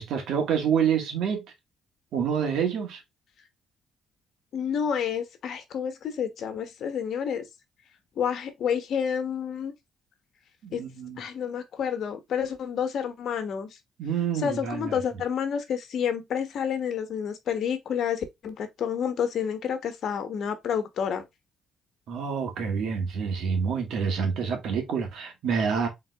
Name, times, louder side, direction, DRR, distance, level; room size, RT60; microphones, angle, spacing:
voice 1, 0.0-1.4 2.1-3.0 10.6-11.2 14.0-15.0 22.1-25.9, right 7 dB, 75° right, 1.8 m, -27 dB
voice 2, 4.5-7.5 8.2-9.7 10.7-10.9 11.2-13.7 14.3-21.2, left 7 dB, 65° left, 1.1 m, -29 dB
3.8 x 3.8 x 3.4 m
cardioid pair, 90°, 0 cm